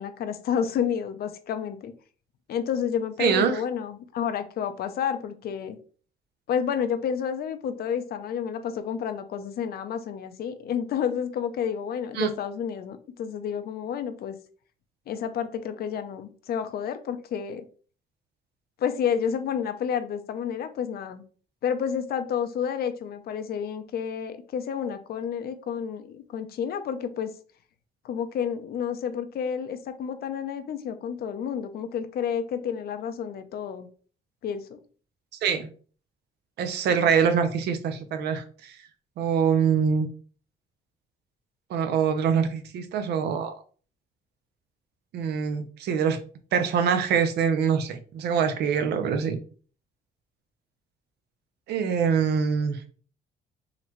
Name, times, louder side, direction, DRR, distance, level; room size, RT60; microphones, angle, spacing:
voice 1, 0.0-1.9 2.5-5.8 6.5-14.3 15.1-17.7 18.8-21.2 21.6-27.3 28.0-33.9 34.4-34.8, left 8 dB, 65° left, 9 dB, 0.6 m, -30 dB
voice 2, 3.2-3.6 12.2-12.3 35.4-35.7 36.6-38.7 39.2-40.1 41.7-43.5 45.1-46.2 46.5-49.4 51.7-52.8, right 7 dB, 75° right, 9 dB, 0.6 m, -24 dB
3.9 x 3.0 x 3.0 m, 0.41 s
cardioid pair, 100°, 17 cm